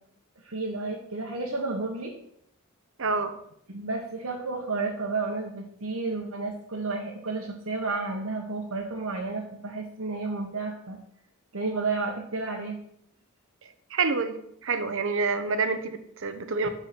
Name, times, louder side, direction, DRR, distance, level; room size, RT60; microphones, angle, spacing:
voice 1, 0.4-2.1 3.7-11.0 11.5-12.8 16.6-16.7, right 3 dB, 85° right, -2 dB, 1.6 m, -31 dB
voice 2, 3.0-3.4 13.9-14.4 14.6-16.7, right 4 dB, 65° right, 9 dB, 1.1 m, -27 dB
12.5 x 4.9 x 6.2 m, 0.73 s
head